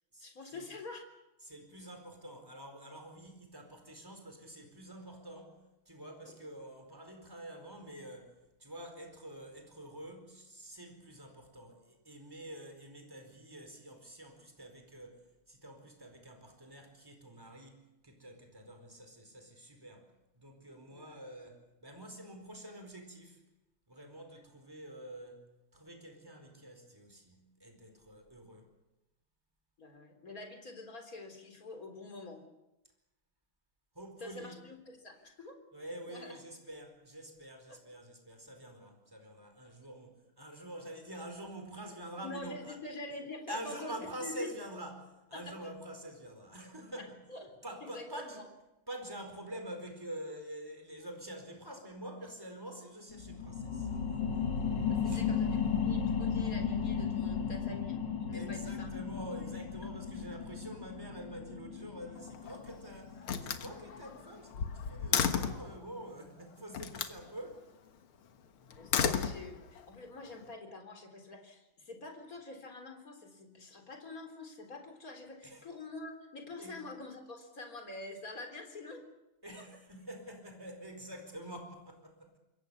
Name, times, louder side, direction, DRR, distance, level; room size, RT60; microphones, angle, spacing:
voice 1, 0.2-1.1 6.2-6.3 20.9-21.2 29.8-32.4 34.2-35.6 36.1-36.4 37.7-37.8 42.2-44.5 45.3-45.7 47.3-47.5 47.8-48.1 48.4-48.5 54.7-58.0 58.3-58.9 68.8-79.0 79.6-79.7, left 2 dB, 40° left, 4 dB, 4.1 m, -46 dB
voice 2, 1.4-23.4 23.9-28.7 33.9-34.6 35.7-42.8 43.5-47.2 47.6-48.4 48.9-54.2 55.0-55.2 58.3-67.7 75.4-75.6 76.6-76.9 79.4-82.4, right 1 dB, 10° right, 5 dB, 4.5 m, -47 dB
sound 1, 53.1-64.3 64.7-64.8, left 6 dB, 60° left, 2.4 m, -35 dB
Slam, 62.2-62.7 63.2-65.7 66.7-67.2 68.7-69.9, left 7 dB, 90° left, 2.3 m, -33 dB
27.0 x 22.0 x 7.1 m, 0.95 s
omnidirectional pair, 2.3 m